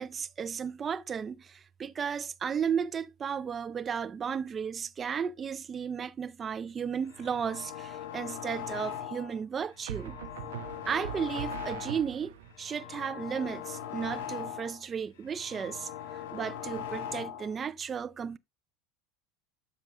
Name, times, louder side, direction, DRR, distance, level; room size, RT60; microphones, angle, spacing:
voice 1, 0.0-10.2 10.9-18.4, right 7 dB, 30° right, 0.5 m, -34 dB
sound 1, 7.0-9.4 9.8-12.1 12.5-14.8 15.2-17.6, left 10 dB, 70° left, 1.6 m, -40 dB
sound 2, 7.2-7.7 9.9-12.5, right 11 dB, 80° right, 0.7 m, -42 dB
12.5 x 5.2 x 2.4 m
hypercardioid pair, 85°, 0 cm